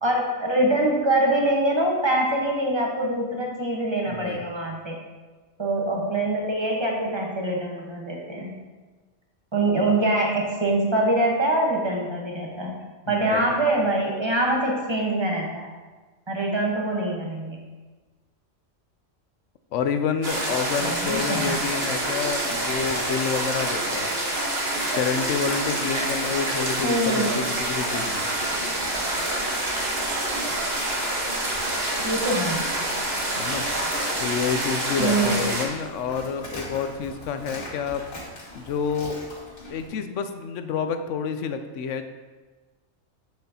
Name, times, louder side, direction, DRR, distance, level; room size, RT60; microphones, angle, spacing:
voice 1, 0.0-5.0 5.6-8.6 9.5-12.7 13.1-15.7 16.3-17.6 20.8-21.6 26.8-27.4 32.0-32.6 35.0-35.5, right 1 dB, 20° right, -1 dB, 1.1 m, -24 dB
voice 2, 4.1-4.4 13.1-13.4 19.7-24.1 24.9-28.3 33.4-33.6 34.2-38.0 38.5-39.2 39.7-42.1, left 6 dB, 75° left, 9 dB, 0.9 m, -28 dB
sound 1, 20.2-35.6, right 1 dB, 50° right, 1.6 m, -27 dB
Livestock farm animals working animals, 27.5-39.9, left 1 dB, 45° left, 1.9 m, -42 dB
7.8 x 6.9 x 2.8 m, 1.3 s
omnidirectional pair, 1.3 m